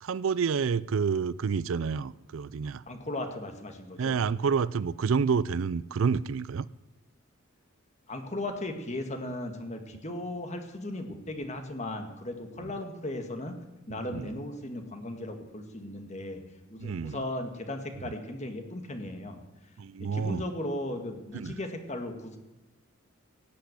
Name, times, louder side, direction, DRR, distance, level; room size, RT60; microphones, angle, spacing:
voice 1, 0.0-2.8 4.0-6.7 14.1-14.3 16.8-17.2 19.8-20.4 21.3-21.6, right 6 dB, 70° right, 0.4 m, -28 dB
voice 2, 2.9-4.2 8.1-13.6 13.9-16.4 16.7-19.4 20.0-22.4, left 1 dB, 35° left, 1.8 m, -36 dB
17.5 x 8.3 x 8.1 m
head